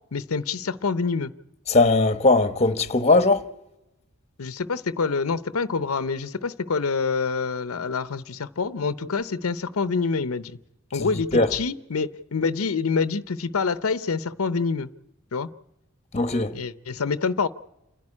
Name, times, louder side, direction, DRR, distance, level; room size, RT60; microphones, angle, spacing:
voice 1, 0.1-1.3 4.4-10.6 10.9-14.9 15.3-15.5 16.5-17.5, left 4 dB, 90° left, 0.7 m, -26 dB
voice 2, 1.7-3.5 11.3-11.5 16.1-16.5, left 2 dB, 30° left, 1.0 m, -19 dB
28.5 x 11.0 x 9.8 m
head